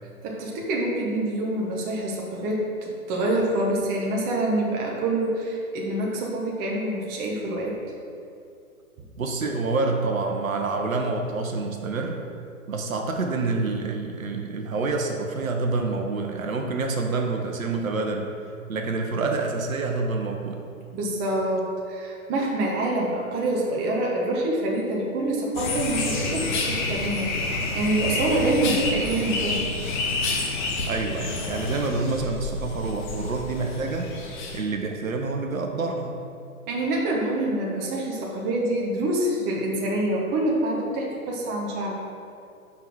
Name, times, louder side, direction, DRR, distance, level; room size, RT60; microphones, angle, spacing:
voice 1, 0.2-7.8 20.9-29.7 36.7-42.0, right 1 dB, 20° right, -2 dB, 1.1 m, -26 dB
voice 2, 9.2-12.2 12.7-18.3 18.7-20.6 30.8-34.1 34.5-36.1, right 3 dB, 65° right, 3 dB, 1.0 m, -27 dB
sound 1, 25.5-34.6, left 3 dB, 35° left, 1.2 m, -29 dB
5.6 x 5.5 x 6.3 m, 2.6 s
figure-of-eight pair, 125°, 43 cm